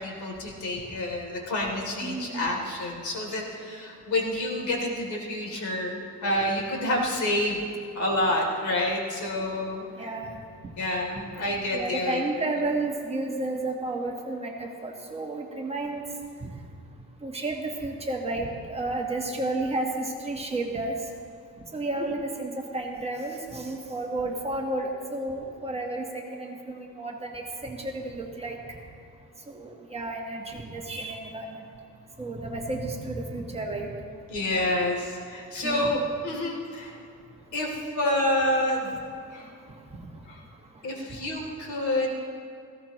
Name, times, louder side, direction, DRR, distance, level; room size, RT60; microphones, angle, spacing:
voice 1, 0.0-7.6 7.9-9.8 10.8-12.2 34.3-37.0 37.5-38.9 39.3-39.5 40.3-40.4 40.8-42.1, left 1 dB, 75° left, -1 dB, 3.0 m, -28 dB
voice 2, 2.0-2.5 10.0-10.4 11.7-16.0 17.2-20.9 21.7-26.1 26.3-28.6 29.5-31.7 32.2-33.9 35.6-36.0, right 2 dB, 20° right, 0 dB, 1.4 m, -32 dB
18.5 x 15.5 x 3.1 m, 2.3 s
cardioid pair, 155°, 30 cm